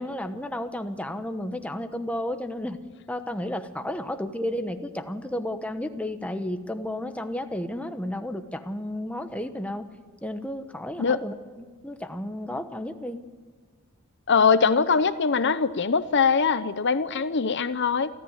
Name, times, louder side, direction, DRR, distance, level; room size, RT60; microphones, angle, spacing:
voice 1, 0.0-2.8 3.1-9.8 10.2-13.2, left 1 dB, 5° left, 7 dB, 1.1 m, -32 dB
voice 2, 14.3-18.1, left 5 dB, 55° left, 13 dB, 0.8 m, -22 dB
28.5 x 13.5 x 9.7 m, 1.5 s
head